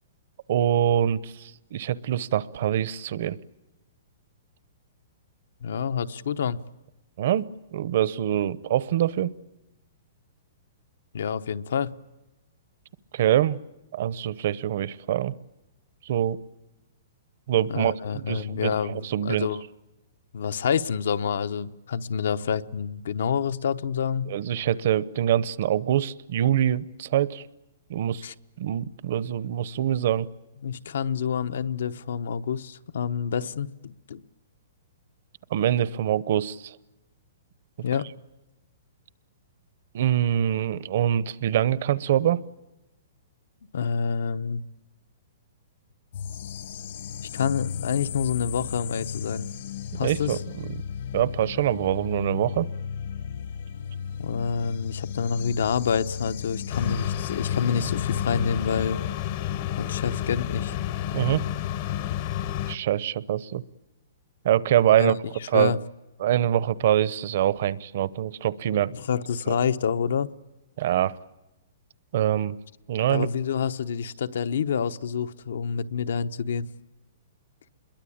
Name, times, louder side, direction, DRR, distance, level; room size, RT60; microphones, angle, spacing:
voice 1, 0.5-3.4 7.2-7.5 7.7-9.3 13.1-13.6 13.9-15.3 16.0-16.4 17.5-19.5 24.3-27.5 27.9-28.2 28.6-30.3 35.5-36.8 39.9-42.4 49.9-50.8 51.1-52.7 61.1-61.4 62.7-63.6 64.4-65.2 65.5-65.8 66.2-68.9 69.5-69.6 70.8-71.2 72.1-72.6 72.9-73.3, right 11 dB, 45° right, 0.8 m, -24 dB
voice 2, 5.6-6.6 11.1-11.9 17.7-19.6 20.3-24.3 28.2-28.3 30.6-34.2 37.8-38.1 43.7-44.6 47.2-49.5 49.9-50.4 54.2-59.0 59.8-60.8 65.0-65.2 65.5-65.8 68.9-70.3 73.1-76.7, left 7 dB, 70° left, 1.0 m, -27 dB
sound 1, 46.1-58.9, left 7 dB, 55° left, 1.3 m, -35 dB
sound 2, 56.7-62.8, left 12 dB, 35° left, 0.9 m, -30 dB
27.0 x 22.0 x 8.7 m
hypercardioid pair, 175°, 0 cm